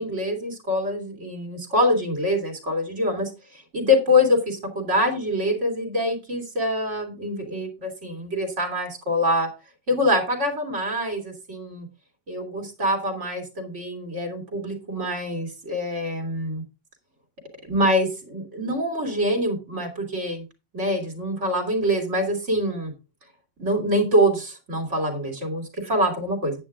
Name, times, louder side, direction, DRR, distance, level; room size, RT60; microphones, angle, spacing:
voice 1, 0.0-9.5 9.9-11.9 12.3-16.6 17.6-20.4 20.7-22.9 23.6-26.5, left 1 dB, 70° right, 3 dB, 3.4 m, -25 dB
10.0 x 8.8 x 3.7 m, 0.29 s
omnidirectional pair, 1.2 m